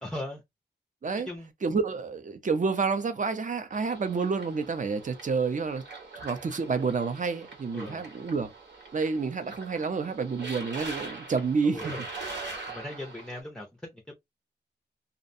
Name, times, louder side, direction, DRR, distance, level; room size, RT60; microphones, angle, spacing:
voice 1, 0.0-0.4 1.2-1.5 7.7-8.0 11.6-12.1 12.7-14.1, left 1 dB, 5° left, 0.5 m, -39 dB
voice 2, 1.6-5.8 6.2-8.5 8.9-11.9, right 4 dB, 45° right, 0.6 m, -29 dB
sound 1, 3.7-13.4, right 3 dB, 80° right, 1.2 m, -42 dB
2.5 x 2.1 x 2.6 m
wide cardioid pair, 90°, 18 cm